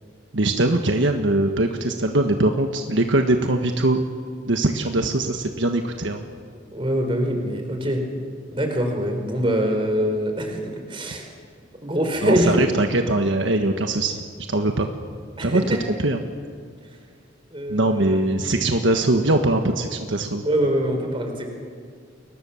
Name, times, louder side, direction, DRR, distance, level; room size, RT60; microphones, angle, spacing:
voice 1, 0.3-4.0 4.5-6.2 12.2-14.2 14.5-14.9 15.4-16.2 17.7-20.4, right 2 dB, 70° right, 5 dB, 1.4 m, -21 dB
voice 2, 6.7-8.0 8.5-10.6 10.9-11.3 11.8-12.6 15.4-15.8 17.5-18.2 20.4-21.5, equal, 25° right, 4 dB, 4.3 m, -24 dB
30.0 x 22.5 x 7.1 m, 2.1 s
head